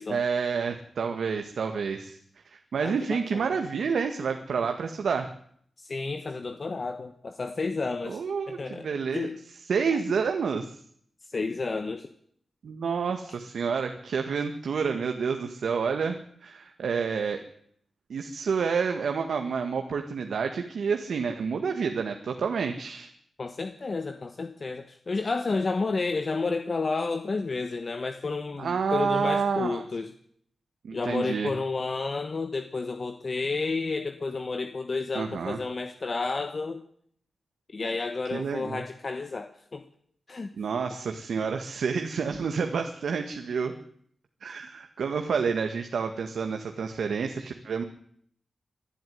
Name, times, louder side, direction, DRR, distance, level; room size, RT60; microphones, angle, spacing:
voice 1, 0.1-2.2 2.5-5.3 8.0-9.3 9.7-10.8 12.6-17.4 18.1-23.1 28.6-29.8 30.8-31.5 35.2-35.6 38.3-38.8 40.5-43.7 44.4-47.8, right 5 dB, 85° right, 5 dB, 1.8 m, -29 dB
voice 2, 2.8-3.5 5.8-8.2 8.5-8.9 9.1-9.4 11.3-12.1 23.4-30.1 30.9-36.8 37.7-39.9 40.3-40.5, left 3 dB, 40° left, 7 dB, 1.3 m, -31 dB
22.5 x 12.0 x 9.6 m, 0.66 s
wide cardioid pair, 125°, 0 cm